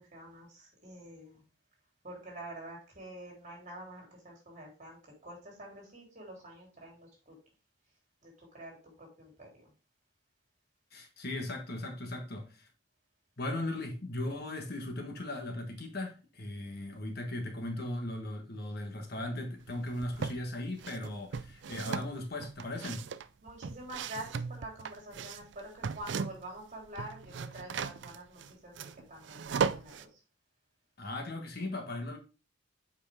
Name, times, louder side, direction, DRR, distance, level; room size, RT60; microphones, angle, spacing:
voice 1, 0.0-1.4 2.0-7.4 8.2-9.7 23.4-30.2, right 1 dB, 40° right, 3.6 m, -47 dB
voice 2, 10.9-12.7 13.4-23.1 31.0-32.2, left 1 dB, 55° left, 1.4 m, -38 dB
sound 1, 19.7-20.4 20.8-26.6 26.9-30.0, right 6 dB, 65° right, 0.4 m, -37 dB
8.0 x 4.9 x 3.5 m
head